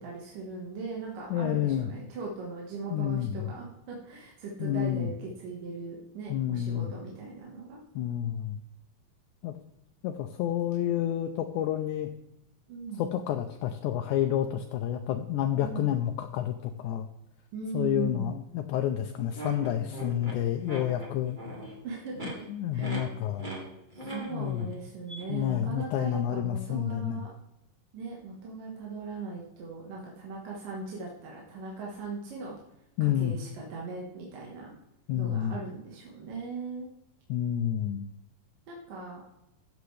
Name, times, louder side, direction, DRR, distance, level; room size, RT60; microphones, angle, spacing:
voice 1, 0.0-7.8 12.7-13.1 15.6-15.9 17.5-18.4 21.8-22.5 22.7-23.0 23.9-27.3 27.9-32.6 33.0-34.7 35.2-36.9 38.7-39.2, right 4 dB, 75° right, -3 dB, 3.1 m, -39 dB
voice 2, 1.3-1.9 2.9-3.5 4.6-5.1 6.3-6.9 8.0-8.6 9.4-9.6 10.0-12.1 13.0-17.1 17.7-21.4 22.2-23.5 24.3-24.7 25.3-27.2 33.0-33.4 35.1-35.6 37.3-38.1, left 11 dB, 80° left, 6 dB, 1.8 m, -29 dB
sound 1, 19.3-21.8 22.1-22.3 22.8-23.0 23.4-23.6 23.9-24.7 25.1-25.2, right 1 dB, 25° right, 1.1 m, -39 dB
13.0 x 8.1 x 3.3 m, 0.84 s
omnidirectional pair, 4.0 m